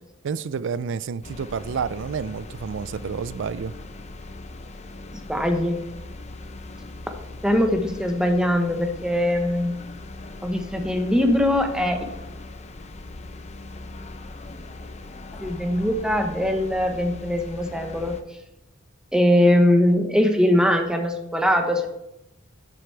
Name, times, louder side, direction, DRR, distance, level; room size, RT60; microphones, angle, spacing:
voice 1, 0.2-3.7, right 6 dB, 65° right, 0.4 m, -29 dB
sound 1, 1.2-18.2, left 2 dB, 35° left, 0.7 m, -40 dB
voice 2, 5.3-5.8 7.4-9.7 10.4-12.0 15.4-18.1 19.1-21.9, left 1 dB, 5° right, 1.0 m, -21 dB
11.0 x 7.8 x 3.3 m
head